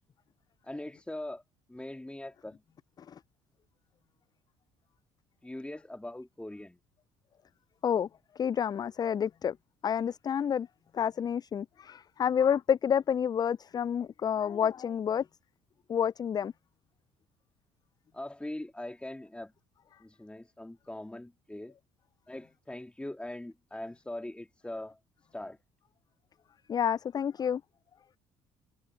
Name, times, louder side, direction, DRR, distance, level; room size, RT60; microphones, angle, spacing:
voice 1, 0.6-1.4 1.7-2.6 5.4-6.8 18.1-19.5 20.0-21.7 22.3-25.0 25.3-25.6, left 1 dB, 10° left, 1.8 m, -41 dB
voice 2, 8.4-9.6 9.8-10.7 10.9-15.3 15.9-16.5 26.7-27.6, left 8 dB, 30° left, 0.3 m, -29 dB
hypercardioid pair, 55°, 13 cm